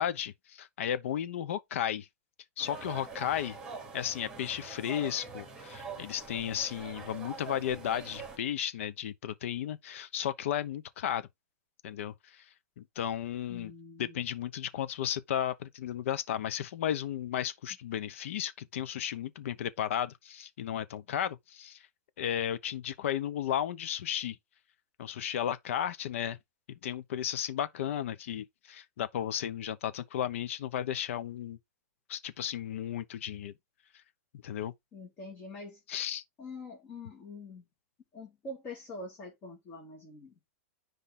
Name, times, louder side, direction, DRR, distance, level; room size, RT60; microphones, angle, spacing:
voice 1, 0.0-2.1 2.6-3.6 3.9-11.3 11.8-12.4 12.8-13.7 14.0-21.8 22.2-24.4 25.0-26.4 26.8-31.6 32.1-33.5 34.4-34.7 35.9-36.2, left 10 dB, 55° left, 0.8 m, -34 dB
sound 1, 2.6-8.4, right 4 dB, 5° right, 2.9 m, -44 dB
voice 2, 13.5-14.2 34.9-35.8 36.4-37.6 38.1-40.5, left 2 dB, 20° left, 2.1 m, -45 dB
10.0 x 3.4 x 3.8 m
supercardioid pair, 175°, 8 cm